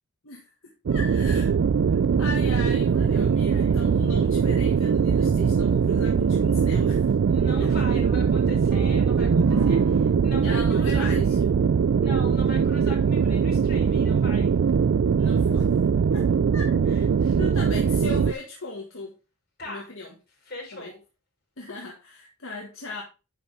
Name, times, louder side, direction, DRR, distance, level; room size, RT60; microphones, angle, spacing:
voice 1, 0.2-1.5 1.9-7.1 7.6-7.7 10.4-11.4 15.2-15.7 16.1-16.3 16.5-16.7 17.4-19.2 19.6-20.1 20.7-20.9 21.6-23.0, left 2 dB, 65° left, 1.7 m, -37 dB
sound 1, 0.9-18.3, right 6 dB, 55° right, 0.3 m, -21 dB
voice 2, 3.3-3.8 4.4-4.6 7.3-11.4 12.0-14.5 16.9-17.4 19.6-19.9 20.4-21.0, left 1 dB, 45° left, 4.8 m, -40 dB
sound 2, 8.7-12.4, right 4 dB, 90° right, 0.7 m, -29 dB
9.9 x 5.3 x 3.4 m
head